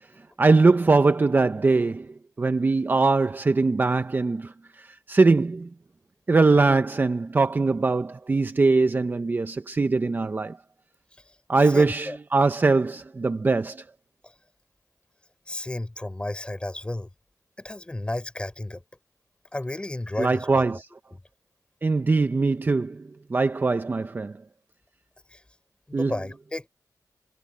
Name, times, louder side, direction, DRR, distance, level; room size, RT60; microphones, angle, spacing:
voice 1, 0.4-5.7 6.3-10.6 11.5-13.8 20.2-20.8 21.8-24.4 25.9-26.1, right 3 dB, 30° right, 0.6 m, -22 dB
voice 2, 11.6-12.2 14.2-14.3 15.5-17.1 17.6-18.8 19.5-20.8 21.1-21.2 25.3-25.4 25.9-26.7, left 1 dB, 15° left, 4.8 m, -33 dB
wide cardioid pair, 165°, 7 cm